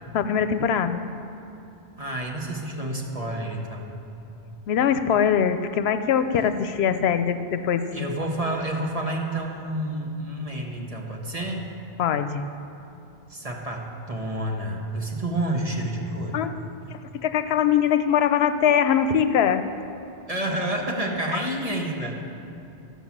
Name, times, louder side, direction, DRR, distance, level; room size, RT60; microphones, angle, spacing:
voice 1, 0.1-1.0 4.7-7.9 12.0-12.4 16.3-16.5 16.9-19.6 21.3-21.4, left 8 dB, 85° left, 11 dB, 0.8 m, -22 dB
voice 2, 2.0-3.9 7.9-11.7 13.3-16.4 20.3-22.2, right 1 dB, 35° right, 0 dB, 1.2 m, -29 dB
13.0 x 5.8 x 7.2 m, 2.7 s
omnidirectional pair, 1.0 m